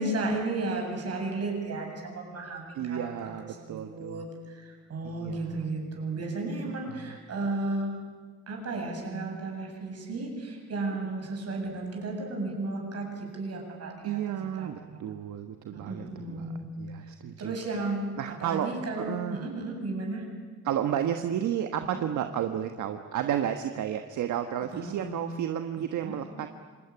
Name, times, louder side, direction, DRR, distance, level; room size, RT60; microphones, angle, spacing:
voice 1, 0.0-8.0 8.5-14.2 14.6-15.1 15.7-16.7 17.4-20.2 24.7-25.2 26.0-26.2, right 2 dB, 55° right, 2 dB, 7.9 m, -34 dB
voice 2, 2.7-4.2 5.0-5.4 6.9-7.1 14.0-16.5 16.8-17.6 18.2-18.7 19.0-19.5 20.6-26.5, right 10 dB, 75° right, 7 dB, 1.4 m, -32 dB
26.0 x 20.5 x 9.8 m, 1.5 s
cardioid pair, 90°, 30 cm